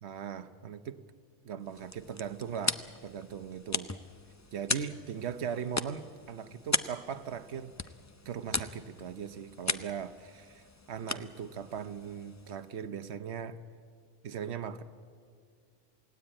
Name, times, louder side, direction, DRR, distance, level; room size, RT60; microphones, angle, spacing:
voice 1, 0.0-1.0 1.4-3.9 4.5-7.7 8.2-13.6 14.2-14.8, right 7 dB, 65° right, 10 dB, 1.2 m, -39 dB
sound 1, 1.6-12.8, left 3 dB, 20° left, 0.4 m, -38 dB
28.0 x 18.0 x 8.9 m, 2.3 s
omnidirectional pair, 1.2 m